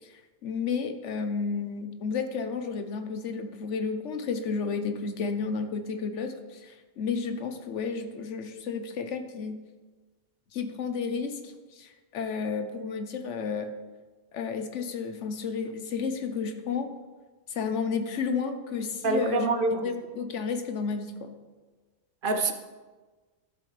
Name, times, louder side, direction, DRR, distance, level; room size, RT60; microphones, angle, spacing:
voice 1, 0.0-9.6 10.5-13.7 14.3-16.9 17.5-21.3, left 5 dB, 85° left, 7 dB, 1.2 m, -32 dB
voice 2, 19.0-19.8 22.2-22.5, right 3 dB, 55° right, 7 dB, 0.8 m, -25 dB
12.5 x 7.8 x 3.3 m, 1.3 s
omnidirectional pair, 1.2 m